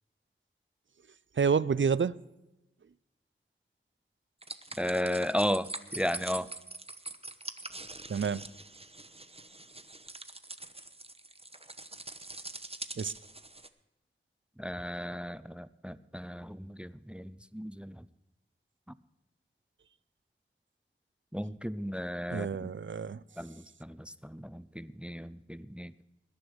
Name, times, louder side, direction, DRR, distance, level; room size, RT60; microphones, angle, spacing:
voice 1, 1.4-2.1 8.1-8.4 13.0-13.1 22.3-23.2, right 6 dB, 65° right, 0.4 m, -28 dB
sound 1, 4.4-13.7, right 2 dB, 30° right, 0.9 m, -44 dB
voice 2, 4.8-6.5 14.6-18.1 21.3-22.7 23.4-25.9, equal, 5° right, 0.5 m, -35 dB
20.5 x 10.0 x 4.8 m
wide cardioid pair, 45°, 21 cm